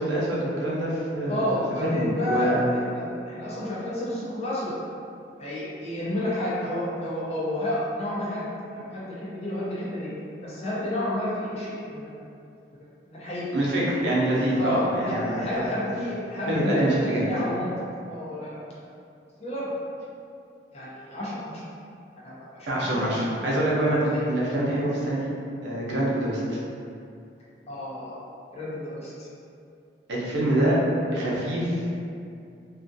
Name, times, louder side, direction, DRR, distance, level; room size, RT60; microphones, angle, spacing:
voice 1, 0.0-1.4 1.8-2.6 13.5-15.7 16.5-17.2 22.7-25.3 25.6-26.6 30.1-30.8 31.1-31.9, right 1 dB, 80° right, -6 dB, 0.6 m, -25 dB
voice 2, 1.3-4.7 5.4-8.5 8.7-10.1 10.4-12.2 13.1-13.5 14.6-17.7 18.1-18.6 19.4-19.7 20.7-21.6 22.2-23.2 24.1-24.2 27.7-28.2 28.5-29.3 30.9-31.3, left 1 dB, 35° left, -8 dB, 0.5 m, -31 dB
2.5 x 2.4 x 2.5 m, 2.5 s
head